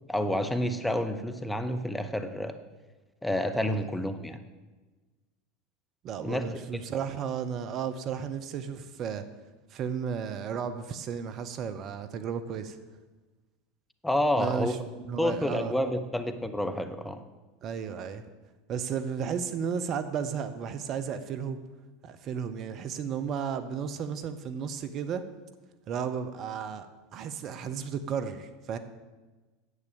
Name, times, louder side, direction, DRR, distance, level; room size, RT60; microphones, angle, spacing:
voice 1, 0.1-2.6 3.2-4.4 6.2-6.4 14.0-14.7 15.2-17.2, left 1 dB, 5° left, 8 dB, 0.9 m, -29 dB
voice 2, 6.0-9.2 9.7-12.8 14.4-14.8 15.0-15.7 17.6-18.2 18.7-21.6 22.0-25.2 25.9-26.9 27.1-28.8, right 7 dB, 40° right, 10 dB, 0.8 m, -33 dB
9.9 x 8.2 x 7.1 m, 1.2 s
figure-of-eight pair, 80°, 0 cm